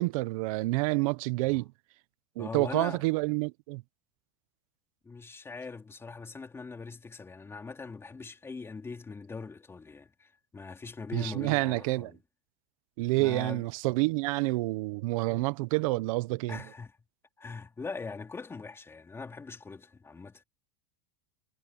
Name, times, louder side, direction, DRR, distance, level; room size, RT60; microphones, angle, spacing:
voice 1, 0.0-1.7 2.4-3.8 11.1-12.1 13.0-16.6, right 23 dB, 70° right, 0.9 m, -28 dB
voice 2, 2.4-3.0 5.0-12.2 13.1-13.7 16.5-16.9 17.4-20.4, left 4 dB, 15° left, 3.4 m, -41 dB
supercardioid pair, 145°, 18 cm